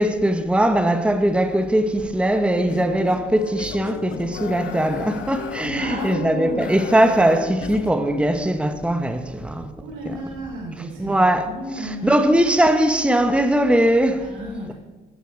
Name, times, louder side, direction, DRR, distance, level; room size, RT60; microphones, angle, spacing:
voice 1, 0.0-9.7 10.0-10.1 11.0-11.5 11.8-14.3, right 1 dB, 5° right, 1.1 m, -20 dB
sound 1, 2.7-7.9, left 7 dB, 90° left, 0.8 m, -34 dB
voice 2, 5.7-6.7 9.8-12.1 14.2-14.7, right 1 dB, 80° right, 4.8 m, -33 dB
14.5 x 6.4 x 6.3 m
cardioid pair, 90°, 20 cm